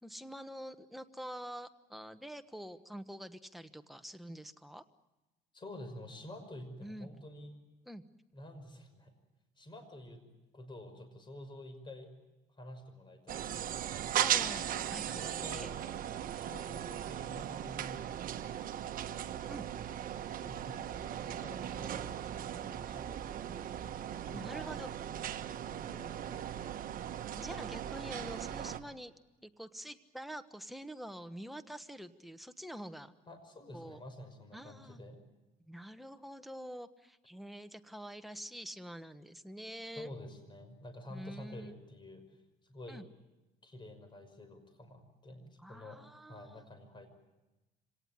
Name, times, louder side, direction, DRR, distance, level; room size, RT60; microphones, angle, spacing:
voice 1, 0.0-4.8 6.8-7.1 7.9-8.0 14.2-15.3 15.5-15.7 19.5-19.6 21.8-22.3 24.1-24.9 27.4-29.1 29.4-33.1 33.7-34.0 34.5-35.0 35.6-40.1 41.1-41.7 42.9-43.0 45.6-46.6, equal, ahead, 11 dB, 1.2 m, -46 dB
voice 2, 5.5-7.5 8.3-9.1 9.6-10.2 10.5-12.1 12.6-14.1 15.0-15.7 16.3-18.2 18.4-18.7 20.4-20.8 21.2-22.1 22.7-23.5 24.2-25.0 25.3-26.5 33.3-35.2 40.0-42.2 42.7-43.0 43.6-46.0 46.3-47.1, left 1 dB, 30° left, 8 dB, 5.8 m, -49 dB
sound 1, 13.3-28.8, right 10 dB, 55° right, 1.3 m, -38 dB
26.0 x 18.0 x 9.7 m, 1.1 s
cardioid pair, 110°, 17 cm